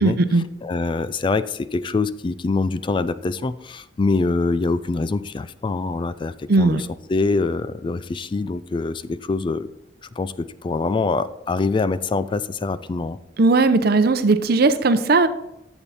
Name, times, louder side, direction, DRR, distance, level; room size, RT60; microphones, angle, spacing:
voice 1, 0.0-0.4 6.5-6.8 13.4-15.3, right 3 dB, 60° right, 11 dB, 0.7 m, -17 dB
voice 2, 0.6-9.7 10.0-13.2, left 3 dB, 25° left, 15 dB, 0.3 m, -24 dB
10.5 x 7.1 x 4.1 m, 0.87 s
head